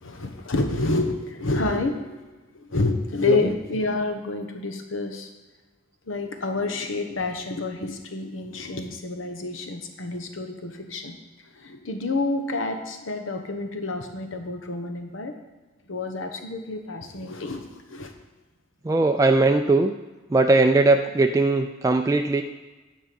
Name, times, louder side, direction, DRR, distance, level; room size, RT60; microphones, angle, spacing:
voice 1, 0.0-5.3 6.1-11.2 11.5-15.3 15.9-18.1, left 3 dB, 80° left, 5 dB, 1.1 m, -29 dB
voice 2, 3.2-3.6 18.9-19.9 20.3-22.4, right 2 dB, 15° right, 4 dB, 0.3 m, -20 dB
10.5 x 4.7 x 7.6 m, 1.2 s
head